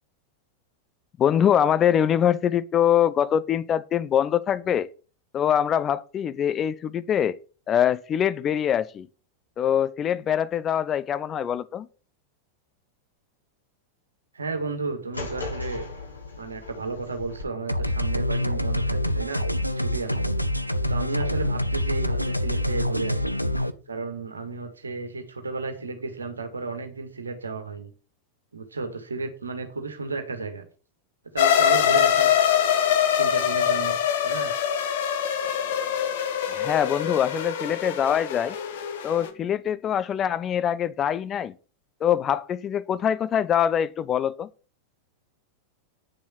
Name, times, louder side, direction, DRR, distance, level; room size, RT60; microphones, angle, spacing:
voice 1, 1.2-4.9 5.3-7.4 7.7-9.1 9.6-11.9 36.5-38.6 39.0-41.5 42.0-44.5, left 9 dB, 25° left, 0.6 m, -23 dB
voice 2, 14.3-15.9 16.4-19.4 19.8-20.3 20.9-23.3 23.9-27.9 28.5-30.6 31.3-32.3 33.2-34.5, right 3 dB, 75° right, 1.8 m, -33 dB
sound 1, 15.1-17.4, left 3 dB, 80° left, 7.4 m, -37 dB
sound 2, 17.7-23.7, left 1 dB, 90° right, 0.7 m, -26 dB
sound 3, 31.4-39.3, left 9 dB, 55° left, 1.7 m, -24 dB
9.8 x 7.1 x 6.0 m
figure-of-eight pair, 90°, 0 cm